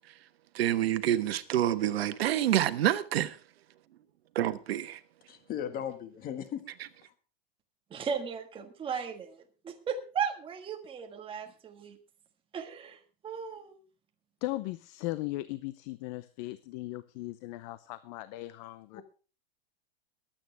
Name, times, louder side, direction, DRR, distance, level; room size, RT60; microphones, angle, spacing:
voice 1, 0.5-3.4 4.3-5.0, right 12 dB, 85° right, 1.3 m, -27 dB
voice 2, 5.3-6.7 18.9-19.0, left 9 dB, 30° left, 1.7 m, -37 dB
voice 3, 7.9-9.4 9.6-12.0 12.5-13.0 13.2-13.8, right 6 dB, 15° right, 1.6 m, -36 dB
voice 4, 14.4-19.0, left 18 dB, 45° left, 0.6 m, -38 dB
22.0 x 8.8 x 3.4 m
supercardioid pair, 145°, 30 cm